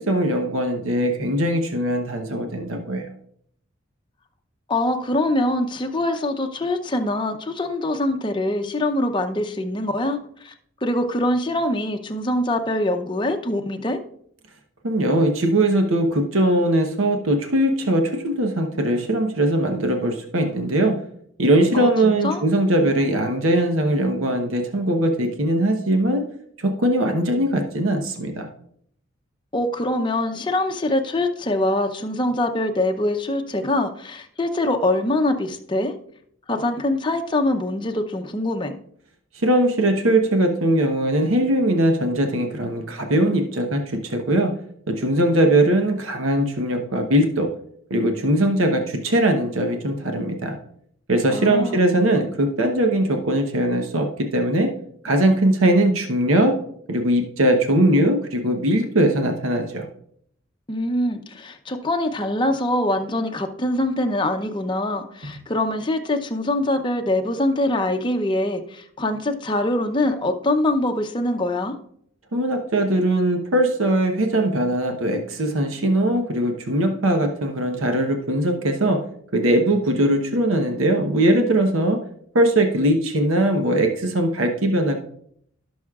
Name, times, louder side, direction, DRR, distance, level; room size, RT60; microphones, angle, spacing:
voice 1, 0.1-3.1 14.8-21.0 21.4-26.3 26.6-28.5 39.4-44.5 44.9-47.5 47.9-50.6 51.1-54.7 55.0-56.5 56.9-59.9 72.3-79.0 79.3-82.0 82.3-85.0, right 1 dB, 90° right, 3 dB, 1.0 m, -20 dB
voice 2, 4.7-10.5 10.8-14.0 21.7-22.4 29.5-35.9 36.5-38.8 51.3-51.9 60.7-71.7, left 1 dB, 25° left, 5 dB, 0.7 m, -24 dB
16.0 x 6.2 x 2.4 m, 0.67 s
head